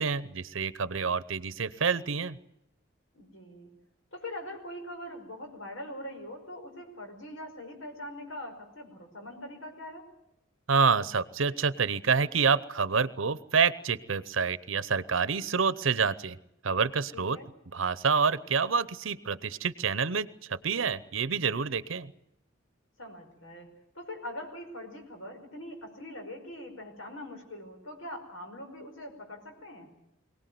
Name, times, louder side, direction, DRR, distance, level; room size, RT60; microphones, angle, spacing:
voice 1, 0.0-2.4 10.7-16.4 16.6-17.4 17.7-22.1, right 5 dB, 80° right, 16 dB, 0.8 m, -27 dB
voice 2, 3.1-3.7 4.1-10.1 17.1-17.5 23.0-29.9, left 1 dB, 90° left, 4 dB, 5.4 m, -42 dB
23.0 x 18.5 x 9.4 m, 0.81 s
head